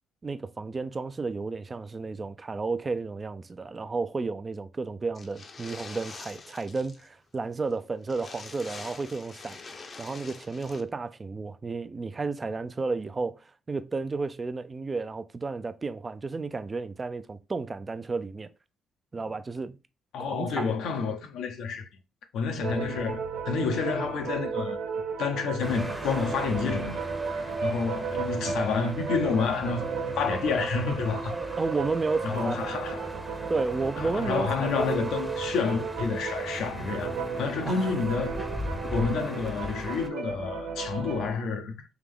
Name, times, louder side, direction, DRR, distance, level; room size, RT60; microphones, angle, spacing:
voice 1, 0.2-18.5 19.1-19.8 20.2-20.7 31.3-32.6 33.5-35.1 37.6-38.0, right 4 dB, 30° right, 0.4 m, -32 dB
sound 1, 5.1-7.1 7.3-7.4 7.7-7.8 8.1-10.8, left 4 dB, 40° left, 0.7 m, -45 dB
voice 2, 20.1-21.9 22.3-23.2 23.5-24.8 25.2-27.0 27.6-31.3 32.2-33.1 34.0-38.4 38.9-41.8, left 5 dB, 80° left, 0.7 m, -29 dB
sound 2, 22.6-41.3, right 5 dB, 80° right, 1.2 m, -34 dB
sound 3, 25.6-40.1, equal, 5° right, 0.8 m, -40 dB
3.5 x 2.9 x 3.6 m
cardioid pair, 80°, 0 cm